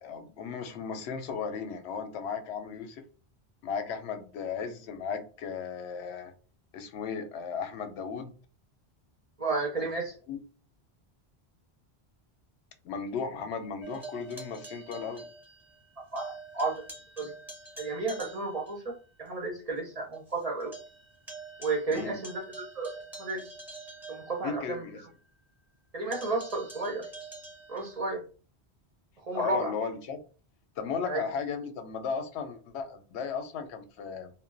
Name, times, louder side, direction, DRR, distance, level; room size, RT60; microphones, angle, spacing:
voice 1, 0.0-3.0 3.6-6.3 6.7-8.3 9.8-9.9 10.3-10.4 12.8-15.2 17.2-17.3 21.9-22.1 24.4-25.0 29.3-30.2 30.8-34.3, left 6 dB, 85° left, 0.8 m, -35 dB
voice 2, 9.4-10.2 16.0-16.7 17.2-17.3 17.8-20.7 21.6-23.6 24.1-24.9 25.9-27.1 27.7-28.2 29.2-29.7 31.0-31.3, right 3 dB, 45° right, 0.6 m, -33 dB
sound 1, 13.8-15.9 16.2-18.8 19.3-19.4 19.8-19.9 20.1-24.9 26.1-28.0, right 3 dB, ahead, 0.7 m, -46 dB
2.2 x 2.0 x 3.7 m
omnidirectional pair, 1.1 m